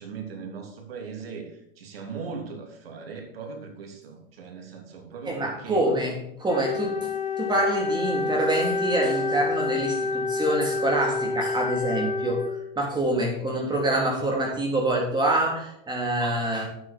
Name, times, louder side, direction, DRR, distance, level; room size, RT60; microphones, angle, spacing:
voice 1, 0.0-5.9, right 5 dB, 85° right, 3 dB, 3.0 m, -39 dB
voice 2, 5.3-16.7, right 1 dB, 15° right, 0 dB, 3.3 m, -26 dB
Wind instrument woodwind instrument, 6.5-12.8, left 3 dB, 30° left, 4.3 m, -28 dB
9.2 x 8.1 x 4.5 m, 0.78 s
supercardioid pair, 125°, 29 cm